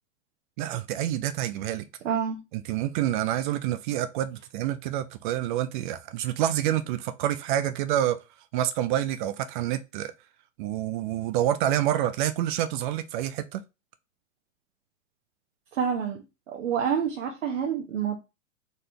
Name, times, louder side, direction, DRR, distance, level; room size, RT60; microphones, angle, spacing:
voice 1, 0.6-1.9 2.5-8.2 8.5-10.1 10.6-13.6, right 12 dB, 45° right, 0.4 m, -27 dB
voice 2, 2.0-2.4 15.7-16.2 16.5-18.2, right 7 dB, 75° right, 1.1 m, -27 dB
4.1 x 3.7 x 3.3 m
hypercardioid pair, 105°, 37 cm